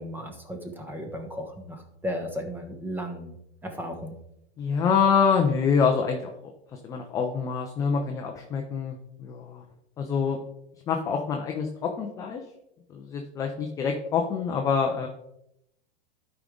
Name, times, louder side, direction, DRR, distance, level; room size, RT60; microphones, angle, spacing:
voice 1, 0.0-3.3 3.6-4.1, equal, 5° right, 4 dB, 1.1 m, -35 dB
voice 2, 4.6-6.3 6.8-9.6 10.0-10.4 10.9-12.4 12.9-15.1, left 6 dB, 10° left, 2 dB, 0.3 m, -26 dB
12.0 x 4.9 x 3.6 m, 0.81 s
supercardioid pair, 145°, 34 cm